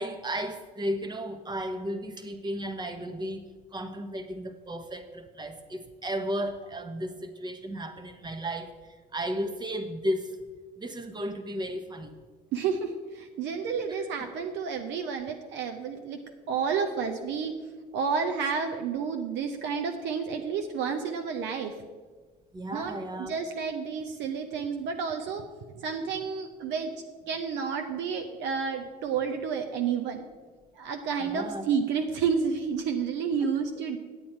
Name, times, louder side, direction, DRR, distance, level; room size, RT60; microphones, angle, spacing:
voice 1, 0.0-8.7 9.1-10.4 10.8-12.2 16.7-16.9 22.5-23.3 31.2-31.7, equal, 20° right, 8 dB, 1.1 m, -34 dB
voice 2, 12.5-16.2 16.5-17.5 17.9-21.7 22.7-25.4 25.7-26.9 27.3-30.2 30.7-34.0, right 6 dB, 60° right, 5 dB, 0.8 m, -30 dB
9.1 x 8.5 x 4.5 m, 1.4 s
hypercardioid pair, 70°, 20 cm